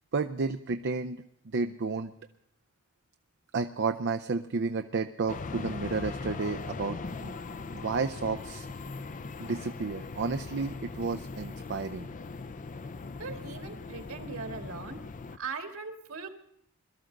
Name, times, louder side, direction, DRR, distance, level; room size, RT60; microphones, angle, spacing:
voice 1, 0.1-1.2 1.5-2.1 3.5-7.3 7.7-8.7 9.4-12.1, right 4 dB, 50° right, 7 dB, 0.5 m, -31 dB
sound 1, 5.3-15.4, left 4 dB, 35° left, 0.5 m, -40 dB
voice 2, 13.2-15.0 15.4-16.3, right 4 dB, 70° right, 4 dB, 1.8 m, -39 dB
22.0 x 13.0 x 3.9 m, 0.72 s
head